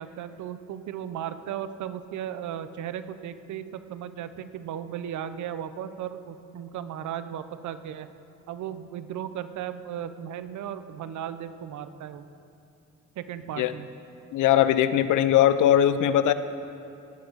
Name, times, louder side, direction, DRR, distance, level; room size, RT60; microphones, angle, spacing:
voice 1, 0.0-8.1 8.5-12.3 13.2-13.9, right 9 dB, 75° right, 12 dB, 0.7 m, -36 dB
voice 2, 14.3-16.3, left 11 dB, 80° left, 13 dB, 0.6 m, -20 dB
17.0 x 11.5 x 4.1 m, 2.7 s
cardioid pair, 90°, 30 cm